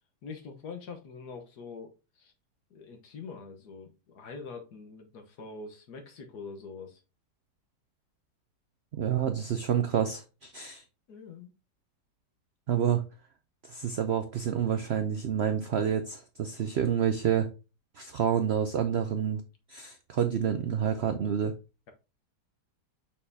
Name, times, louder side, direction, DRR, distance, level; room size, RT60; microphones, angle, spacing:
voice 1, 0.2-2.3 2.7-7.0 11.1-11.5, left 4 dB, 70° left, 5 dB, 1.7 m, -44 dB
voice 2, 8.9-10.8 12.7-13.0 13.7-17.5 18.0-19.4 19.7-21.5, right 8 dB, 70° right, 8 dB, 0.6 m, -28 dB
6.5 x 5.6 x 2.7 m, 0.29 s
omnidirectional pair, 1.8 m